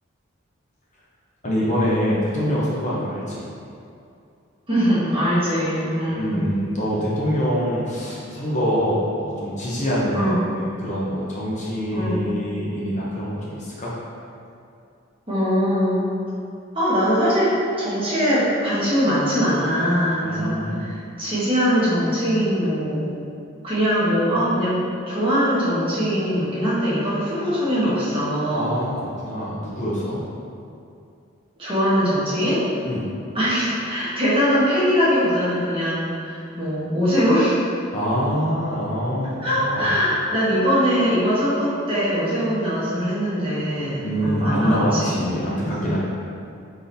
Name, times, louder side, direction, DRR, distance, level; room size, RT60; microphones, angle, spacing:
voice 1, 1.4-3.4 6.1-13.9 20.2-20.8 28.5-30.2 32.8-33.1 37.9-39.9 44.0-46.0, equal, 35° left, -6 dB, 0.7 m, -25 dB
voice 2, 4.7-6.4 10.1-10.4 11.9-12.2 15.3-16.0 16.7-23.1 23.6-28.7 31.6-32.6 33.3-37.5 39.4-45.2 45.5-46.0, equal, 25° right, -10 dB, 1.3 m, -22 dB
5.0 x 3.9 x 2.7 m, 2.5 s
head